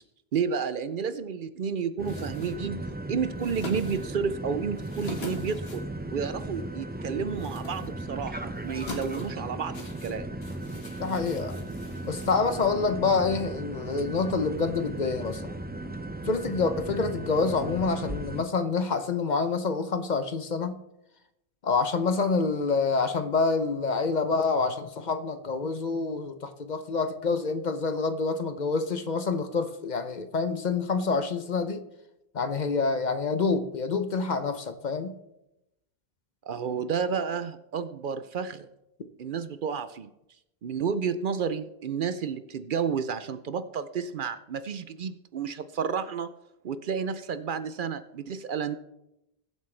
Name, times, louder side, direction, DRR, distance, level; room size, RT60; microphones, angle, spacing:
voice 1, 0.3-2.8 3.1-5.9 6.1-10.3 36.4-38.7 39.2-40.1 40.6-46.3 46.6-48.8, right 6 dB, 60° right, 12 dB, 0.7 m, -31 dB
sound 1, 2.0-12.9, left 2 dB, 75° left, 2.1 m, -45 dB
sound 2, 2.0-18.4, right 2 dB, 15° right, 0.4 m, -37 dB
voice 2, 11.0-11.6 12.1-15.6 16.2-20.8 21.6-31.8 32.3-35.2, left 4 dB, 50° left, 9 dB, 0.8 m, -27 dB
21.0 x 7.4 x 3.3 m, 0.89 s
omnidirectional pair, 1.0 m